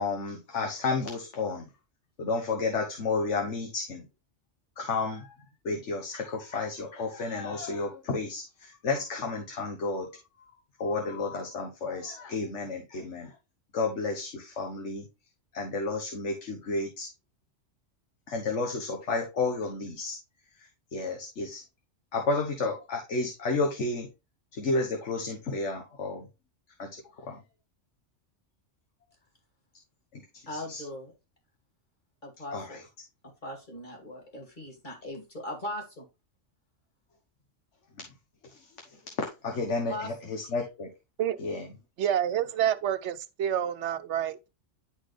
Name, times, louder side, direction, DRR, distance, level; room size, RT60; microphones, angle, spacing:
voice 1, 0.0-1.7 2.2-4.0 4.8-5.4 5.6-10.1 10.8-13.3 13.7-15.1 15.5-17.1 18.3-20.2 20.9-21.6 22.1-24.1 24.5-26.3 26.8-27.4 30.1-30.8 32.5-32.8 38.5-38.7 39.2-40.9 41.4-41.7, left 3 dB, 75° left, 1.5 m, -31 dB
voice 2, 30.5-31.1 32.2-32.9 33.2-36.0 39.8-40.1 42.6-42.7, left 1 dB, 40° left, 2.6 m, -39 dB
voice 3, 42.0-44.5, right 10 dB, 70° right, 1.0 m, -28 dB
11.0 x 4.0 x 3.3 m
omnidirectional pair, 1.2 m